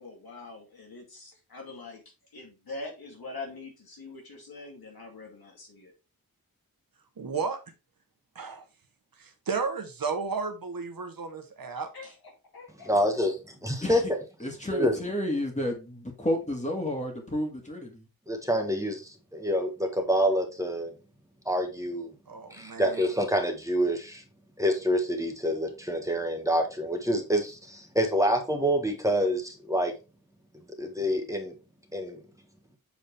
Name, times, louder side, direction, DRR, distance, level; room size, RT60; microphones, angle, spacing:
voice 1, 0.0-2.0 2.3-5.9 11.9-12.9, left 3 dB, 85° left, 2.2 m, -43 dB
voice 2, 7.2-7.6 8.4-8.6 9.5-11.9 22.3-23.0, right 5 dB, 75° right, 1.1 m, -33 dB
voice 3, 12.9-13.3 13.6-14.0 14.7-14.9 18.3-20.9 21.4-22.1 22.5-24.2 24.6-29.9 30.8-31.5 31.9-32.2, equal, 10° right, 1.3 m, -27 dB
voice 4, 13.8-14.1 14.4-18.1, left 1 dB, 20° left, 2.0 m, -31 dB
7.2 x 4.2 x 3.3 m
wide cardioid pair, 90°, 35 cm